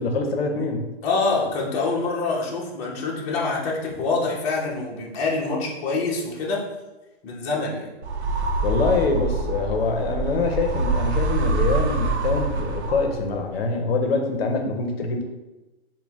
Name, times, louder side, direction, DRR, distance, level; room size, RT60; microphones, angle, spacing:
voice 1, 0.0-0.9 8.6-15.2, left 3 dB, 65° left, 3 dB, 0.7 m, -24 dB
voice 2, 1.0-6.6 7.2-7.9, left 3 dB, 25° left, -3 dB, 0.7 m, -25 dB
sound 1, 8.0-13.3, right 3 dB, 80° right, 0.6 m, -25 dB
4.1 x 2.2 x 3.5 m, 1.1 s
hypercardioid pair, 150°, 32 cm